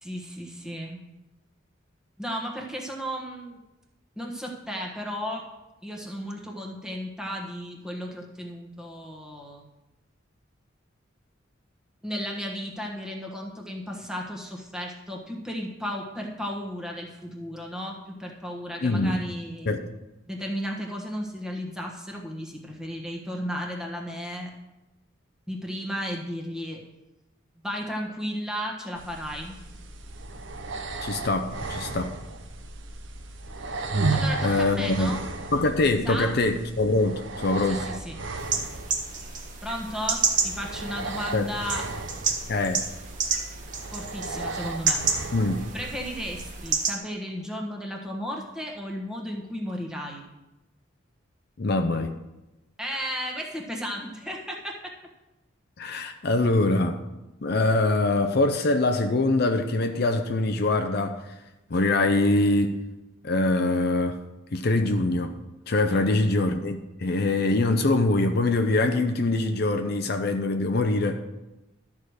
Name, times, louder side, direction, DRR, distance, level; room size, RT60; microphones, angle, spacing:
voice 1, 0.0-1.0 2.2-3.6 4.1-5.4 5.8-9.7 12.0-19.8 20.3-24.5 25.5-26.8 27.6-29.6 34.1-35.3 36.0-36.4 37.7-38.2 39.6-41.8 43.9-45.0 45.7-50.3 52.8-54.9 65.9-66.3, equal, 5° right, -1 dB, 1.4 m, -34 dB
voice 2, 18.8-19.2 19.7-19.9 31.0-32.1 34.4-35.2 35.5-37.9 41.3-41.5 42.5-42.8 45.3-45.7 51.6-52.1 55.8-57.0 57.4-61.2 61.7-62.8 63.2-64.2 64.5-65.3 65.7-71.2, left 2 dB, 50° left, 6 dB, 0.6 m, -24 dB
sound 1, 29.0-46.7, right 3 dB, 65° right, 0.8 m, -34 dB
sound 2, 38.4-46.9, right 5 dB, 40° right, 1.2 m, -30 dB
12.5 x 4.9 x 6.4 m, 1.0 s
head